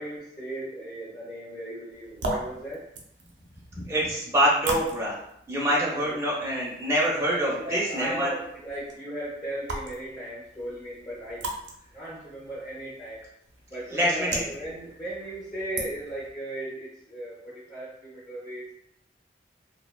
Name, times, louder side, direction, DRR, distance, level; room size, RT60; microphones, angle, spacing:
voice 1, 0.0-2.9 6.0-6.2 7.4-11.5 11.9-13.3 13.7-18.7, right 1 dB, 25° left, -9 dB, 0.6 m, -36 dB
sound 1, 1.9-16.3, right 2 dB, 85° right, 0.5 m, -39 dB
voice 2, 3.7-5.2 5.5-8.3 13.9-14.4, equal, 15° right, -5 dB, 0.5 m, -25 dB
2.7 x 2.1 x 2.2 m, 0.74 s
head